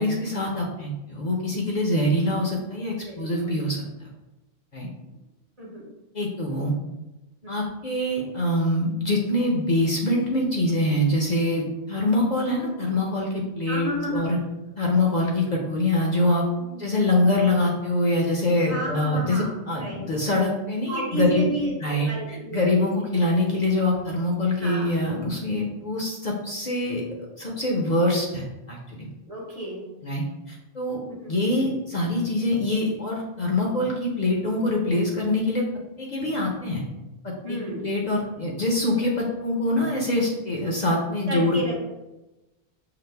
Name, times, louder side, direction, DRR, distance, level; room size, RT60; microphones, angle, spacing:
voice 1, 0.0-4.1 4.7-4.9 6.1-6.7 7.5-14.4 14.8-16.5 16.8-21.5 21.8-29.1 30.0-31.0 31.3-35.6 36.0-36.8 37.2-41.6, left 1 dB, 50° left, -1 dB, 0.7 m, -24 dB
voice 2, 3.0-3.5 5.6-5.8 7.4-7.5 13.7-14.3 16.7-16.9 18.6-19.5 19.8-20.0 20.9-22.9 24.6-24.9 29.3-29.8 31.1-31.4 37.4-37.8 41.3-41.8, right 1 dB, 40° right, -3 dB, 0.8 m, -31 dB
5.8 x 2.1 x 3.2 m, 1.0 s
omnidirectional pair, 1.1 m